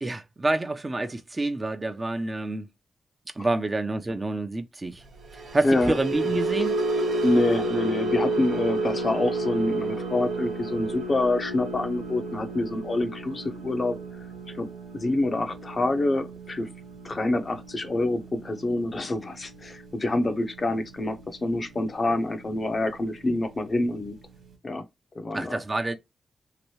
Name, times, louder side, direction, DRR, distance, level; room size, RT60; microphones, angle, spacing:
voice 1, 0.0-2.6 3.4-5.0 5.5-6.7 25.3-26.0, right 2 dB, 30° right, 0.6 m, -28 dB
sound 1, 5.2-21.6 21.9-22.2 22.6-22.8, right 2 dB, 85° right, 1.0 m, -31 dB
voice 2, 5.6-5.9 7.2-14.0 14.5-14.7 14.9-16.7 17.0-24.2 24.6-24.8 25.2-25.6, left 2 dB, 45° left, 0.6 m, -26 dB
2.9 x 2.6 x 3.0 m
cardioid pair, 60°, 0 cm